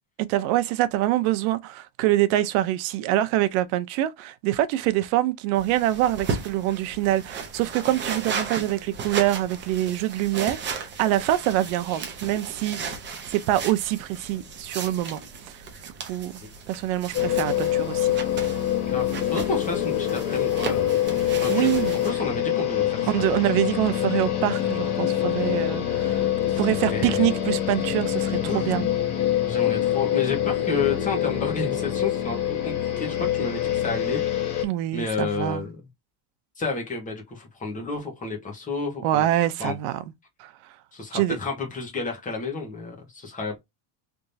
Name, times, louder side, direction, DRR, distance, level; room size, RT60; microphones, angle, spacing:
voice 1, 0.3-13.0 13.3-15.2 15.5-16.4 16.7-18.2 21.3-22.0 23.1-26.2 26.6-28.9 34.6-35.7 39.0-40.0 40.4-40.5 41.1-41.4, right 14 dB, 65° right, 0.7 m, -25 dB
sound 1, 5.5-22.1, right 5 dB, 25° right, 0.7 m, -36 dB
sound 2, 17.1-34.6, left 11 dB, 60° left, 1.4 m, -25 dB
voice 2, 18.9-21.0 21.4-23.1 26.9-27.2 28.4-28.7 29.5-34.2 34.5-34.6 34.9-35.8 36.6-39.8 40.9-43.6, left 4 dB, 15° left, 1.3 m, -31 dB
3.5 x 3.0 x 2.6 m
cardioid pair, 175°, 46 cm